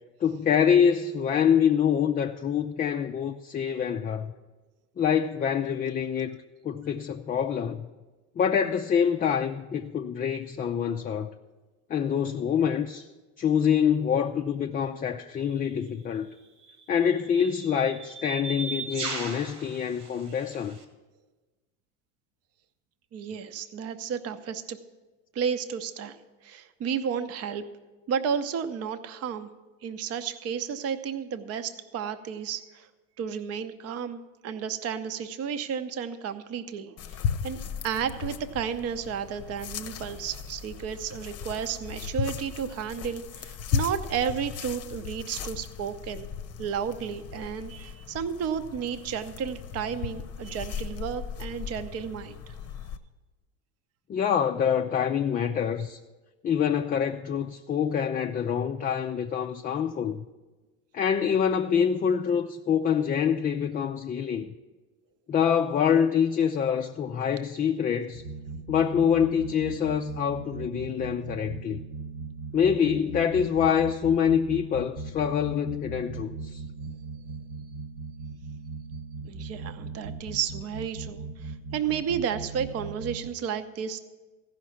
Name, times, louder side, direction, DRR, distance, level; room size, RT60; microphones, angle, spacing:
voice 1, 0.2-4.3 5.0-6.3 6.6-7.9 8.4-11.3 11.9-13.1 13.4-16.3 16.9-20.8 54.1-56.0 56.4-60.2 60.9-64.5 65.3-68.2 68.7-71.8 72.5-76.6, left 8 dB, 25° left, 0.4 m, -25 dB
sound 1, 15.4-15.6 16.6-20.8, right 3 dB, 85° right, 2.0 m, -38 dB
voice 2, 23.1-24.8 25.3-26.2 26.4-27.6 28.1-29.5 29.8-32.9 33.2-37.0 37.4-37.6 37.8-46.3 46.6-52.5 79.2-84.0, right 7 dB, 40° right, 0.8 m, -32 dB
sound 2, 37.0-53.0, left 7 dB, 45° left, 0.8 m, -36 dB
sound 3, 68.1-83.3, right 4 dB, 55° right, 1.3 m, -39 dB
14.5 x 5.9 x 7.2 m
supercardioid pair, 95°, 37 cm